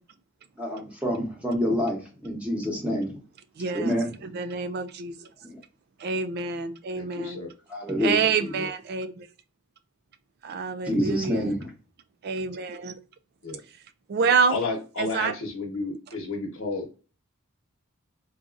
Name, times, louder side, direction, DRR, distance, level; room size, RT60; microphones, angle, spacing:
voice 1, 0.6-3.2 3.7-4.1 7.7-8.2 10.9-11.7, equal, 5° right, 0.8 m, -27 dB
voice 2, 3.6-4.0 4.2-5.2 6.0-7.4 8.0-9.3 10.4-11.5 12.2-13.0 14.1-14.6 15.0-15.3, right 5 dB, 50° right, 0.4 m, -27 dB
voice 3, 6.9-7.5 8.2-8.7 13.4-13.6 14.5-17.0, left 3 dB, 80° left, 1.0 m, -32 dB
3.9 x 2.3 x 2.4 m
head